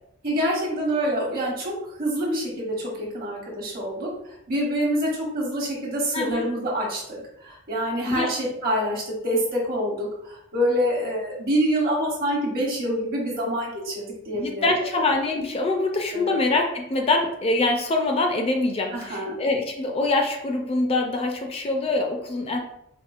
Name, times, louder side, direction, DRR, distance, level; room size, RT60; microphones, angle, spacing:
voice 1, 0.2-4.1 4.5-14.6 14.9-15.0 16.1-16.3 18.9-19.4, equal, 50° right, -3 dB, 1.1 m, -26 dB
voice 2, 14.3-22.6, left 2 dB, 30° left, 3 dB, 0.4 m, -24 dB
4.2 x 2.0 x 2.4 m, 0.77 s
head